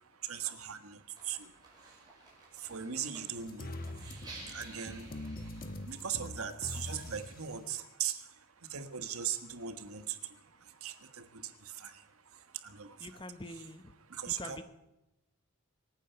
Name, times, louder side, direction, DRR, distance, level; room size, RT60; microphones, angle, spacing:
voice 1, 0.3-1.0 1.2-1.5 2.6-3.7 4.5-5.1 5.9-8.2 8.7-10.2 10.8-11.2 11.8-11.9 12.6-13.0 14.1-14.6, right 9 dB, 80° right, 9 dB, 1.4 m, -38 dB
sound 1, 1.2-6.2, right 2 dB, 20° right, 5.1 m, -53 dB
sound 2, 3.4-7.4, left 1 dB, 40° left, 1.1 m, -43 dB
voice 2, 13.0-13.9 14.3-14.6, left 2 dB, 20° left, 10 dB, 0.8 m, -45 dB
25.5 x 9.2 x 5.7 m, 0.93 s
head